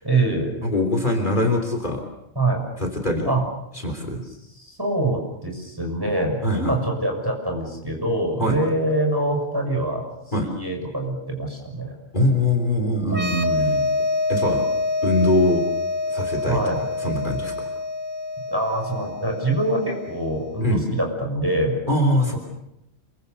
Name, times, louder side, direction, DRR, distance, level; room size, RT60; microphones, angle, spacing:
voice 1, 0.0-0.6 2.3-2.6 3.2-3.4 4.1-4.2 4.6-10.1 10.4-11.9 12.9-13.8 16.5-16.8 18.5-21.8 22.3-22.4, right 2 dB, 15° right, 2 dB, 6.6 m, -25 dB
voice 2, 0.6-2.0 2.8-3.3 3.8-4.2 6.4-6.8 8.4-8.6 10.3-10.5 12.1-13.4 14.3-14.6 15.0-15.6 16.1-16.6 17.0-17.7 20.6-20.8 21.9-22.4, left 1 dB, 35° left, 3 dB, 3.5 m, -22 dB
sound 1, 13.1-20.6, left 3 dB, 75° right, 2.2 m, -26 dB
27.5 x 24.0 x 6.9 m, 0.85 s
omnidirectional pair, 1.3 m